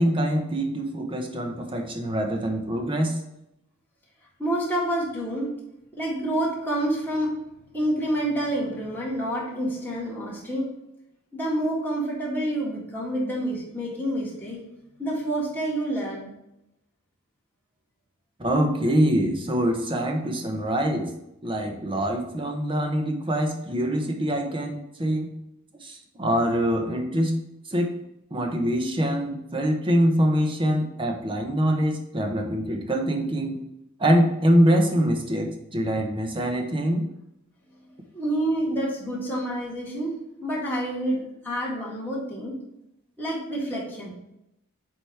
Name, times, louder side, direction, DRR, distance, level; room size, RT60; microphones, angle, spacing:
voice 1, 0.0-3.2 18.4-21.1 21.4-25.3 25.8-27.3 27.7-27.9 28.3-33.6 34.0-37.0, equal, 25° right, 3 dB, 0.9 m, -24 dB
voice 2, 4.4-5.5 6.0-7.3 7.7-10.7 11.3-14.6 15.0-16.3 38.1-40.2 40.4-42.6 43.2-44.1, right 1 dB, 10° left, -6 dB, 2.0 m, -28 dB
8.2 x 3.0 x 4.6 m, 0.83 s
head